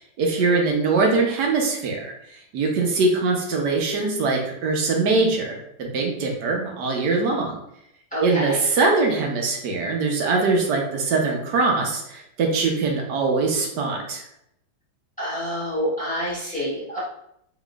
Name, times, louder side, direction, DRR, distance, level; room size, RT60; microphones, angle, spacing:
voice 1, 0.2-7.6 8.2-14.2, right 3 dB, 65° right, 0 dB, 1.4 m, -22 dB
voice 2, 8.1-8.6 15.2-17.0, equal, 5° left, -8 dB, 1.2 m, -27 dB
4.2 x 3.9 x 2.4 m, 0.76 s
omnidirectional pair, 2.1 m